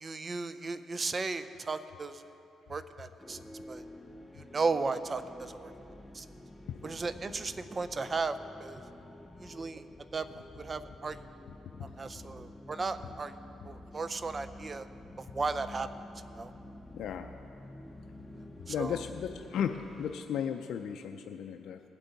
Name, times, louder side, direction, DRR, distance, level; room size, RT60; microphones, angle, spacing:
voice 1, 0.0-2.2 2.7-3.8 4.4-5.7 6.1-6.3 6.8-8.8 9.4-9.8 10.1-10.3 10.5-11.2 12.0-13.3 13.7-14.9 15.2-15.9 16.3-16.5 18.7-19.0, right 4 dB, 35° right, 12 dB, 0.5 m, -35 dB
sound 1, 3.2-20.2, left 1 dB, 10° left, 0.7 m, -49 dB
voice 2, 16.9-17.4 18.7-21.8, left 8 dB, 75° left, 5 dB, 0.4 m, -35 dB
19.5 x 8.1 x 4.0 m, 2.9 s
cardioid pair, 90°, 0 cm